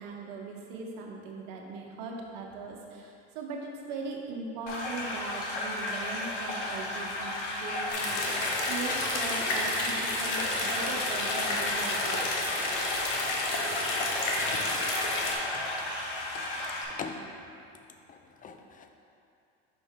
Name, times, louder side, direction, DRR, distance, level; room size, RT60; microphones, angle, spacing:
voice 1, 0.0-12.2, right 3 dB, 60° right, 0 dB, 1.0 m, -40 dB
sound 1, 4.7-16.9, left 1 dB, 80° left, 1.1 m, -34 dB
sound 2, 7.9-15.3, left 2 dB, 60° left, 1.1 m, -31 dB
voice 2, 15.5-15.9 16.3-16.5 16.9-17.3 18.1-18.9, left 5 dB, 25° left, 5 dB, 0.5 m, -42 dB
5.4 x 5.3 x 3.6 m, 2.6 s
hypercardioid pair, 90°, 35 cm